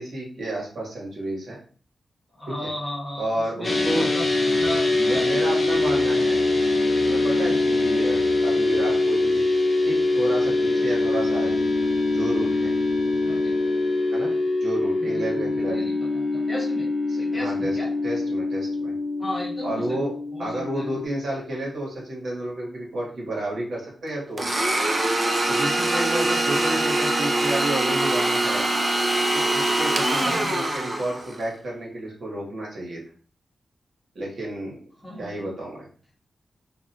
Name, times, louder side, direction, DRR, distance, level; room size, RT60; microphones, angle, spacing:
voice 1, 0.0-1.6 2.6-2.7 3.2-4.1 5.0-6.4 7.0-9.4 9.8-11.7 12.0-12.7 14.1-14.3 14.6-15.9 17.1-17.7 18.0-18.9 19.6-24.6 25.5-28.6 29.3-33.0 34.1-34.8 35.2-35.9, right 1 dB, 65° right, -4 dB, 1.1 m, -31 dB
voice 2, 2.3-4.2 4.6-5.3 5.8-6.0 13.2-13.6 15.0-16.9 17.2-17.9 19.2-20.0 20.3-21.0 26.5-26.7 30.2-30.7 35.0-35.5, left 1 dB, 15° left, -5 dB, 0.8 m, -35 dB
sound 1, 3.6-21.1, left 2 dB, 40° left, 0.5 m, -23 dB
Domestic sounds home sounds, 24.4-31.4, right 1 dB, 25° right, 0.3 m, -23 dB
2.4 x 2.2 x 2.6 m, 0.41 s
wide cardioid pair, 170°, 0 cm